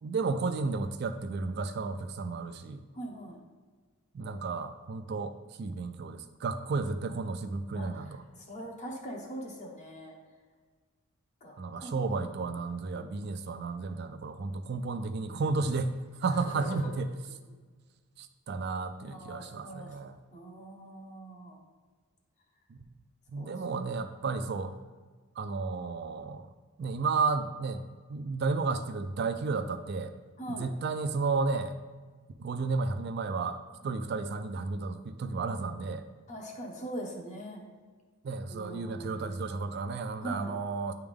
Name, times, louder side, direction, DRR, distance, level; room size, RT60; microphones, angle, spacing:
voice 1, 0.0-2.9 4.1-8.2 11.6-17.1 18.2-20.2 22.7-22.8 23.3-24.7 25.4-26.5 26.8-27.8 28.1-30.1 30.6-31.7 32.4-33.6 33.8-36.0 38.2-40.9, right 4 dB, 45° right, 8 dB, 0.3 m, -32 dB
voice 2, 2.9-3.4 7.7-10.1 11.4-12.3 12.8-13.1 16.3-16.9 19.0-20.0 20.3-21.6 23.4-23.5 30.4-30.7 33.8-33.9 36.3-37.6 38.5-39.3 40.2-40.6, right 1 dB, 30° left, 0 dB, 0.9 m, -42 dB
9.6 x 3.5 x 3.4 m, 1.5 s
head